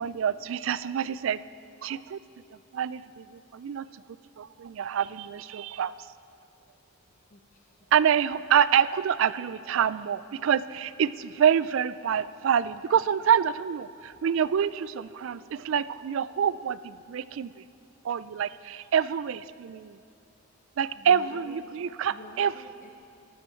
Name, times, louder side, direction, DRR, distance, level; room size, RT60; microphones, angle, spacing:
voice 1, 0.0-1.4 1.8-2.2 2.7-4.0 4.4-5.9 7.9-17.6 18.0-20.0 20.8-22.5, right 8 dB, 60° right, 17 dB, 0.3 m, -26 dB
voice 2, 7.1-7.8 20.9-21.7 22.1-22.9, left 2 dB, 35° left, 2 dB, 0.6 m, -48 dB
13.5 x 11.5 x 4.4 m, 2.6 s
head